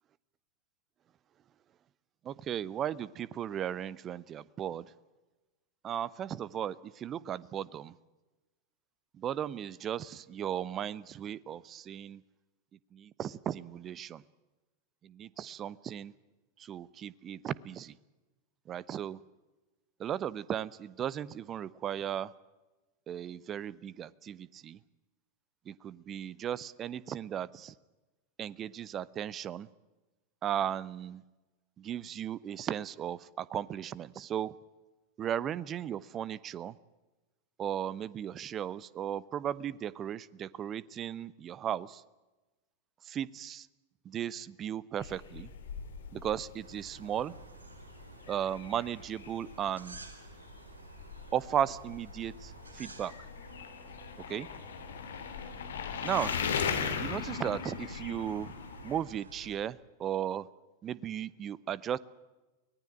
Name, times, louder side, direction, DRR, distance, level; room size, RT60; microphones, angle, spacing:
voice 1, 2.2-4.9 5.8-8.0 9.1-12.2 12.9-14.2 15.0-16.1 16.6-18.0 18.7-19.2 20.0-22.3 23.1-24.8 25.7-27.7 28.4-29.7 30.4-31.2 31.8-34.5 35.2-36.7 37.6-42.0 43.0-43.7 44.0-45.5 46.1-47.4 48.3-50.0 51.3-53.1 54.3-54.5 56.0-56.3 57.0-58.5 58.8-60.5 60.8-62.0, right 10 dB, 30° right, 21 dB, 0.8 m, -36 dB
sound 1, 45.0-59.0, left 7 dB, 65° left, 2.9 m, -39 dB
sound 2, 46.6-59.6, right 4 dB, 70° right, 3.3 m, -52 dB
24.5 x 19.0 x 8.8 m, 1.1 s
figure-of-eight pair, 90°, 0 cm